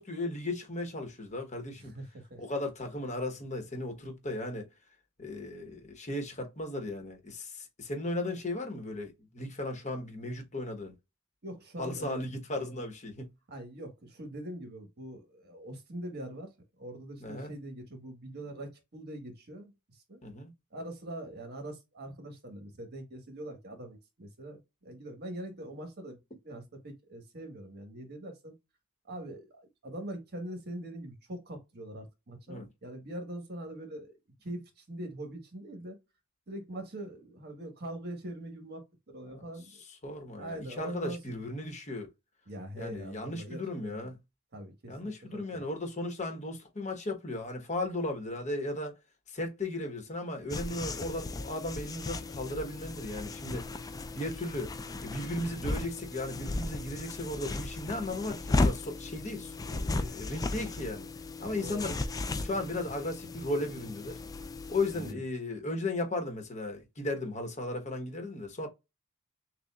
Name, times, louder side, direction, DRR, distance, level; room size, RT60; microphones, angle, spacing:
voice 1, 0.0-1.9 2.4-4.7 5.2-10.9 11.8-13.3 17.2-17.5 20.2-20.5 32.5-32.7 39.3-39.4 40.0-42.1 42.8-44.2 44.9-49.0 49.3-53.7 54.1-54.7 55.0-61.1 61.4-62.0 62.4-64.2 64.7-68.7, left 2 dB, 35° left, 1.2 m, -36 dB
voice 2, 1.8-2.4 11.4-12.3 13.5-16.5 16.8-20.2 20.7-26.2 26.4-28.5 29.0-36.0 36.5-39.8 40.4-41.4 42.5-44.1 44.5-45.1 45.5-45.7 61.4-61.9 64.9-65.2, right 1 dB, 50° right, 1.4 m, -43 dB
sound 1, 50.5-65.1, left 2 dB, 15° left, 0.3 m, -35 dB
6.5 x 2.4 x 2.4 m
head